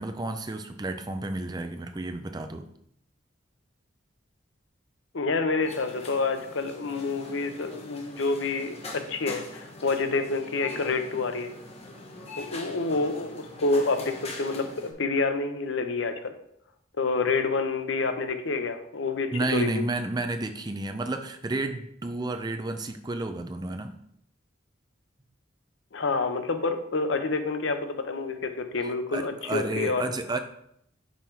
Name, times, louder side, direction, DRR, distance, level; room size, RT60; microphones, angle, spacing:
voice 1, 0.0-2.7 19.3-23.9 29.1-30.4, right 2 dB, 20° right, 7 dB, 0.5 m, -31 dB
voice 2, 5.1-11.5 12.3-16.3 17.0-19.7 25.9-30.0, left 3 dB, 80° left, 7 dB, 0.7 m, -28 dB
sound 1, 5.6-14.9, left 2 dB, 30° left, 1.0 m, -43 dB
5.5 x 4.5 x 4.5 m, 0.72 s
head